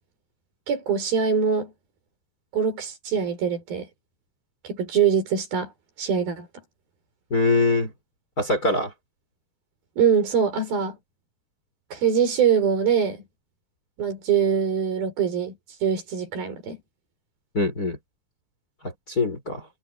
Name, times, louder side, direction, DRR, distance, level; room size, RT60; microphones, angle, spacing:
voice 1, 0.7-1.7 2.5-3.9 4.6-5.7 6.0-6.5 10.0-11.0 11.9-13.2 14.0-15.6 15.8-16.8, right 7 dB, 80° right, 7.0 m, -23 dB
voice 2, 7.3-7.9 8.4-8.9 17.5-18.0 18.8-19.7, left 3 dB, 25° left, 5.6 m, -23 dB
omnidirectional pair, 4.2 m